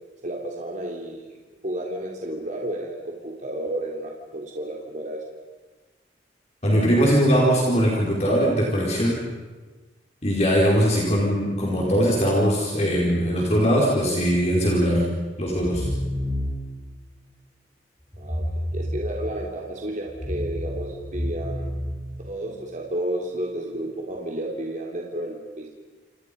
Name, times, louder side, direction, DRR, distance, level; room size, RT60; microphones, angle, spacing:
voice 1, 0.2-1.4 1.6-5.2 18.2-18.4 18.7-21.7 22.2-25.7, right 1 dB, 45° right, -1 dB, 3.3 m, -32 dB
voice 2, 6.6-9.2 10.2-15.0 15.4-15.9, equal, 40° left, -3 dB, 4.9 m, -21 dB
sound 1, 15.5-16.8 18.1-19.6 20.1-22.6, equal, 15° left, 5.5 m, -30 dB
29.5 x 28.0 x 5.4 m, 1.2 s
head